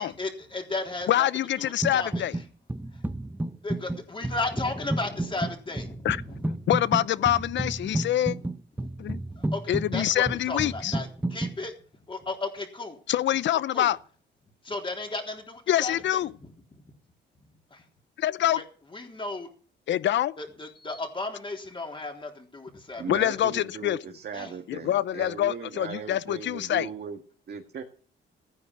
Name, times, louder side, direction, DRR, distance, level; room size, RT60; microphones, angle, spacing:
voice 1, 0.0-1.3 1.6-2.4 2.9-3.0 3.6-6.7 7.2-7.3 7.9-8.0 8.3-8.4 8.8-11.7 12.1-13.0 13.7-13.9 14.6-16.8 17.4-17.9 18.5-18.6 18.9-19.5 20.4-23.4 24.3-24.6, left 2 dB, 25° left, 3.7 m, -35 dB
voice 2, 1.1-2.3 6.0-6.2 6.7-8.4 9.0-9.2 9.7-10.9 13.1-14.0 15.7-16.3 18.2-18.6 19.9-20.3 23.1-24.0 24.7-26.9, left 12 dB, 65° left, 0.7 m, -25 dB
sound 1, 1.8-2.4 2.7-11.6, right 1 dB, 10° right, 0.8 m, -32 dB
voice 3, 23.0-27.2 27.5-27.8, right 6 dB, 55° right, 1.8 m, -38 dB
14.5 x 9.9 x 6.1 m
cardioid pair, 90°, 20 cm